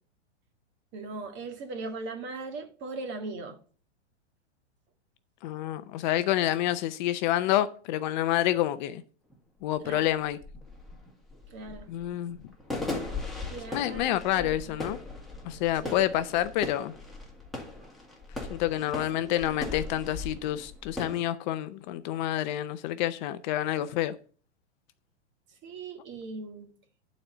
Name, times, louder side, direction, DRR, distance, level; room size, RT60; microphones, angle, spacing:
voice 1, 0.9-3.6 9.8-10.1 11.5-11.9 13.5-14.5 15.8-16.0 19.2-19.6 25.6-26.7, right 3 dB, 30° right, 1.9 m, -39 dB
voice 2, 5.4-9.0 9.6-10.4 11.9-12.4 13.7-15.0 15.4-16.9 18.5-24.1, left 13 dB, 40° left, 0.6 m, -28 dB
sound 1, 9.3-9.4 9.7-21.2, left 3 dB, ahead, 2.0 m, -39 dB
11.5 x 4.3 x 6.8 m
hypercardioid pair, 125°, 35 cm